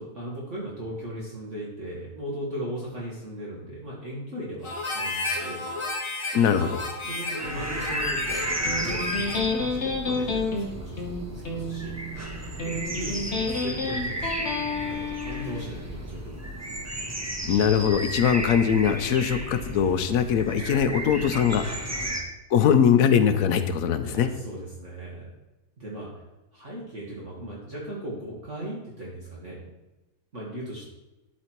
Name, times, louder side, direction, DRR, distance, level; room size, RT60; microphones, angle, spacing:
voice 1, 0.0-5.7 7.0-12.0 12.6-16.6 21.9-22.2 24.0-25.3 25.8-26.1 26.5-29.7 30.3-30.9, right 1 dB, 45° right, -5 dB, 1.9 m, -38 dB
Harmonica, 4.6-9.5, left 2 dB, 30° left, 0.6 m, -32 dB
voice 2, 6.3-6.8 17.4-21.7 22.5-24.3, left 8 dB, 65° left, 9 dB, 1.0 m, -21 dB
sound 1, 7.4-22.2, right 1 dB, 20° right, 0.5 m, -34 dB
Electric guitar, 8.6-15.6, left 3 dB, 45° left, 1.6 m, -30 dB
12.0 x 4.1 x 4.5 m, 1.0 s
omnidirectional pair, 1.8 m